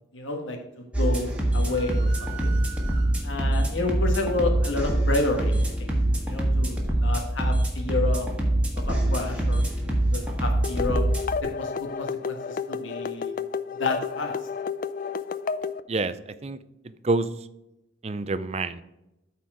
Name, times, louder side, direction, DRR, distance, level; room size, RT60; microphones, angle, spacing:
voice 1, 0.1-2.5 3.2-5.5 5.8-5.9 6.3-8.3 8.9-11.0 11.4-13.3 13.8-14.3, left 2 dB, 75° left, 3 dB, 1.5 m, -30 dB
minimal electronic grove Techno loop track, 0.9-11.4, right 1 dB, 5° right, 1.5 m, -24 dB
sound 1, 1.7-3.5, right 10 dB, 75° right, 1.2 m, -43 dB
sound 2, 10.6-15.8, left 6 dB, 45° left, 0.3 m, -31 dB
voice 2, 16.8-17.3 18.0-18.8, right 3 dB, 30° right, 13 dB, 0.5 m, -27 dB
13.0 x 4.4 x 4.9 m, 0.93 s
head